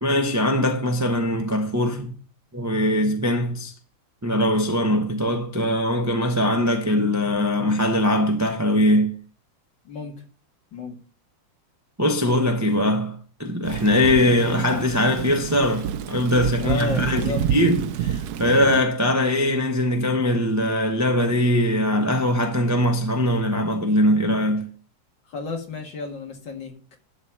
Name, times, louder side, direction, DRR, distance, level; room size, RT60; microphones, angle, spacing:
voice 1, 0.0-2.1 2.5-3.7 4.2-9.1 12.0-24.7, left 1 dB, 15° right, 0.6 m, -21 dB
Thunder / Rain, 13.6-18.8, right 9 dB, 85° right, 0.8 m, -28 dB
voice 2, 16.6-17.4 25.3-26.7, left 3 dB, 60° left, 2.4 m, -31 dB
12.0 x 4.2 x 6.1 m
omnidirectional pair, 2.3 m